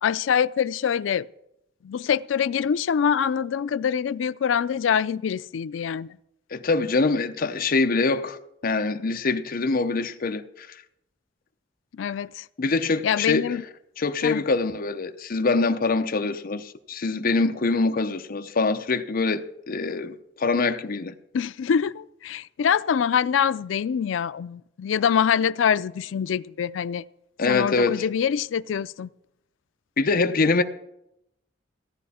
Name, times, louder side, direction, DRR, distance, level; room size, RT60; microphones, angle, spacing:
voice 1, 0.0-1.3 1.8-6.2 11.9-12.5 13.0-13.6 14.2-14.4 21.3-27.0 27.5-29.1, left 7 dB, 90° left, 0.4 m, -24 dB
voice 2, 6.5-8.4 8.6-10.8 12.6-13.5 14.0-21.1 27.4-28.0 30.0-30.6, left 3 dB, 50° left, 0.7 m, -24 dB
16.0 x 11.0 x 4.2 m
head